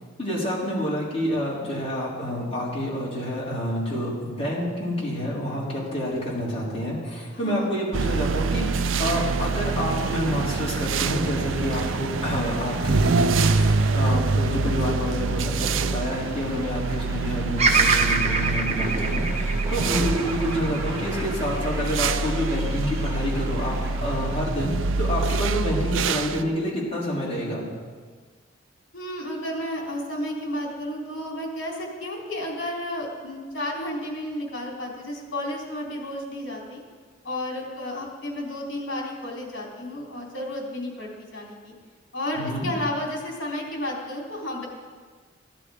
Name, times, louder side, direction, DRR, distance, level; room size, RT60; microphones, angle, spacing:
voice 1, 0.2-23.7 24.0-24.7 25.0-27.6 42.3-42.7, equal, 30° left, -6 dB, 4.1 m, -28 dB
voice 2, 7.3-7.7 28.9-36.8 37.2-41.7 42.1-44.7, left 1 dB, 70° left, -2 dB, 3.7 m, -32 dB
sound 1, 7.9-26.4, right 3 dB, 85° right, 0.5 m, -26 dB
sound 2, 9.1-24.5, right 1 dB, 15° right, 2.5 m, -38 dB
Bird vocalization bird call bird song, 17.6-21.8 22.4-23.1, right 3 dB, 35° right, 1.0 m, -25 dB
15.5 x 11.0 x 5.0 m, 1.5 s
head